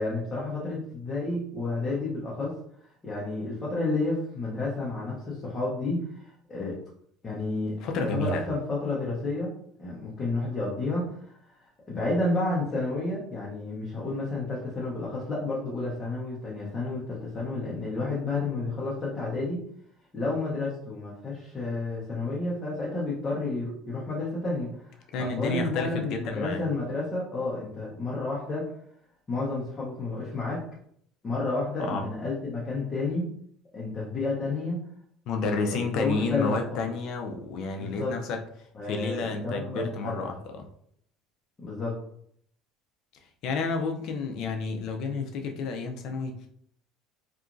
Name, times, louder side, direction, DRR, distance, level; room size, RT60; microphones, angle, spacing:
voice 1, 0.0-2.5 2.8-6.8 7.2-7.7 8.0-9.5 9.8-11.6 11.9-19.6 20.1-24.9 25.2-28.7 29.3-30.6 31.2-33.3 33.7-34.8 35.4-36.9 37.8-38.2 38.7-40.2 41.6-42.0, left 2 dB, 20° left, -6 dB, 0.7 m, -31 dB
voice 2, 7.8-8.5 25.1-26.6 31.9-32.0 35.3-40.7 43.4-46.5, left 4 dB, 55° left, 4 dB, 0.4 m, -31 dB
2.9 x 2.4 x 2.5 m, 0.66 s
cardioid pair, 155°, 0 cm